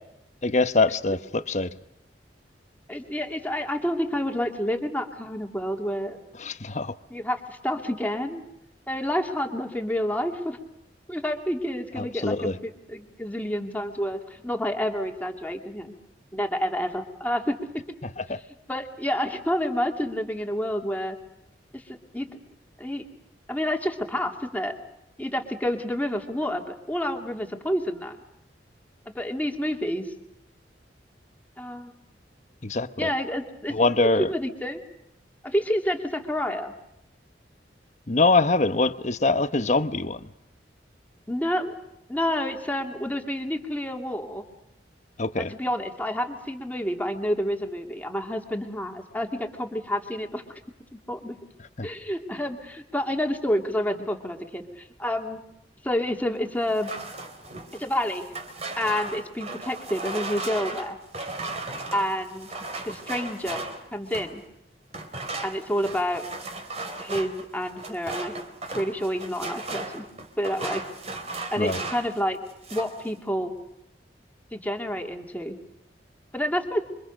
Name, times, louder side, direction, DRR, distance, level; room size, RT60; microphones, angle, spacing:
voice 1, 0.4-1.7 6.4-6.9 12.0-12.6 18.2-18.4 32.6-33.1 33.7-34.3 38.1-40.2 45.2-45.5 51.8-51.9 71.6-71.8, left 3 dB, 40° left, 11 dB, 1.1 m, -23 dB
voice 2, 2.9-6.2 7.1-8.4 8.9-10.6 11.1-15.9 16.3-17.6 18.7-21.2 21.7-22.3 22.8-23.0 23.5-24.7 25.2-28.2 29.1-30.1 31.6-31.9 33.0-34.8 35.4-36.7 41.3-41.7 42.1-44.4 45.4-50.6 51.1-51.4 51.8-55.4 55.8-56.9 57.7-58.3 58.8-61.0 61.9-62.5 62.8-63.6 63.9-64.4 65.4-66.3 67.0-68.3 68.7-70.1 70.4-70.8 71.5-72.4 72.7-73.5 74.5-75.6 76.3-76.8, equal, 10° left, 3 dB, 2.8 m, -29 dB
sound 1, 56.7-64.4 64.9-72.2 72.5-73.0, right 2 dB, 35° right, 3.6 m, -36 dB
28.0 x 25.0 x 6.6 m, 0.82 s
head